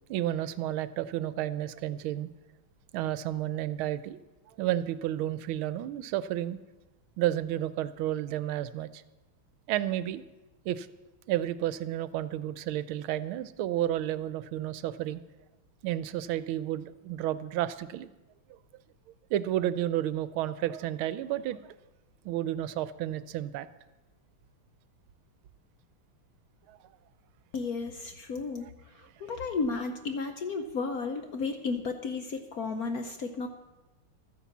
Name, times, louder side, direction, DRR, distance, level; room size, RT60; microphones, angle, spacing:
voice 1, 0.1-2.3 2.9-4.2 4.6-6.6 7.2-9.0 9.7-10.2 10.6-10.9 11.3-15.2 15.8-18.1 19.3-21.6 22.2-23.7 26.7-26.8, right 13 dB, 80° right, 15 dB, 1.4 m, -31 dB
voice 2, 27.5-28.7 29.0-33.5, left 4 dB, 60° left, 7 dB, 1.0 m, -33 dB
13.0 x 10.0 x 7.1 m, 1.1 s
omnidirectional pair, 2.4 m